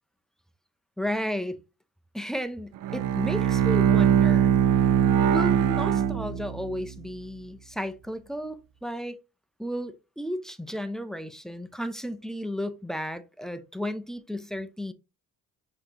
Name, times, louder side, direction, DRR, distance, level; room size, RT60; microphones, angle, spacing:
voice 1, 1.0-1.6 2.1-4.6 5.3-9.2 9.6-14.9, equal, ahead, 0.5 m, -33 dB
Bowed string instrument, 2.8-6.9, right 9 dB, 70° right, 0.6 m, -22 dB
5.7 x 3.0 x 2.8 m
cardioid pair, 85°, 33 cm